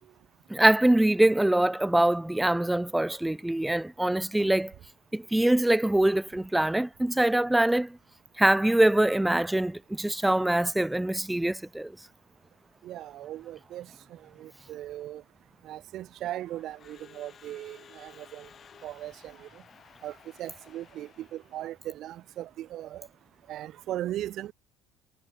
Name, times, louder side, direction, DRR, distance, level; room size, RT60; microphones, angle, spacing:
voice 1, 0.5-4.7 5.1-8.0 8.4-11.9, right 1 dB, 5° right, 0.4 m, -24 dB
voice 2, 12.8-13.8 14.4-15.2 15.7-18.4 18.8-19.1 20.0-20.1 20.4-23.1 23.5-24.5, right 13 dB, 60° right, 1.6 m, -38 dB
Crowd / Alarm, 16.2-21.8, left 7 dB, 40° left, 6.5 m, -55 dB
hypercardioid pair, 65°, 0 cm